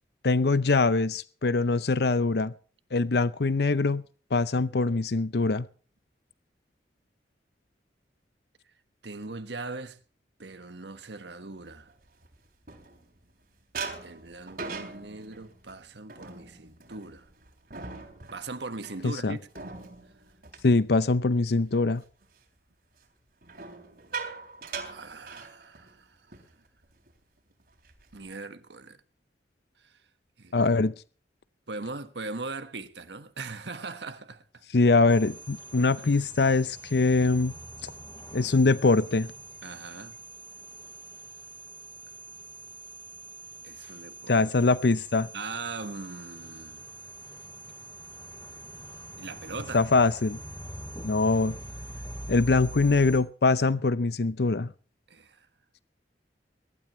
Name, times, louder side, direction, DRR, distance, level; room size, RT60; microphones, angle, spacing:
voice 1, 0.2-2.5 2.9-4.0 4.3-5.7 19.0-19.4 20.6-22.0 30.5-30.9 34.7-37.5 37.8-37.9 38.3-39.3 44.3-45.3 49.7-50.4 51.0-51.5 52.3-54.7, left 3 dB, 65° left, 0.6 m, -23 dB
voice 2, 9.0-10.0 10.4-11.9 14.0-17.3 18.3-19.4 24.8-26.3 28.1-29.0 29.8-30.0 30.4-30.7 31.7-34.6 36.0-36.1 39.6-40.2 43.6-44.4 45.3-46.9 49.2-49.9 55.1-55.5, right 3 dB, 75° right, 1.5 m, -40 dB
sound 1, 11.9-13.3 13.7-21.6 21.9-22.3 23.4-26.0 26.3-26.5 26.8-27.1 27.6-28.3, right 4 dB, 55° right, 3.6 m, -41 dB
sound 2, 35.1-53.2, right 1 dB, 25° left, 3.2 m, -44 dB
22.5 x 12.5 x 3.1 m
head